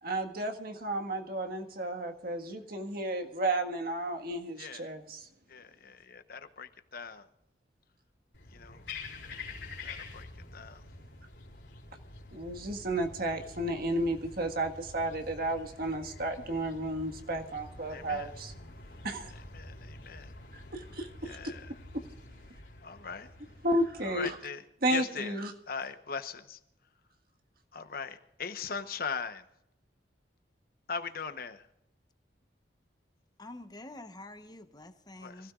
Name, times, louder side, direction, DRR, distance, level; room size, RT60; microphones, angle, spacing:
voice 1, 0.0-5.3 12.3-18.5 19.0-19.3 20.5-21.5 21.9-22.1 23.6-24.3 24.8-25.5, right 1 dB, 55° right, 1.7 m, -33 dB
voice 2, 5.5-7.3 8.5-8.9 9.8-10.8 17.9-18.3 19.5-20.3 21.2-21.7 22.8-23.3 24.0-24.6 24.9-25.4 25.7-26.6 27.7-29.4 30.9-31.7 35.2-35.5, left 5 dB, 55° left, 1.0 m, -40 dB
sound 1, 8.3-24.3, left 3 dB, 90° left, 3.8 m, -47 dB
voice 3, 33.4-35.5, left 2 dB, 25° left, 1.0 m, -47 dB
25.0 x 16.0 x 2.5 m
head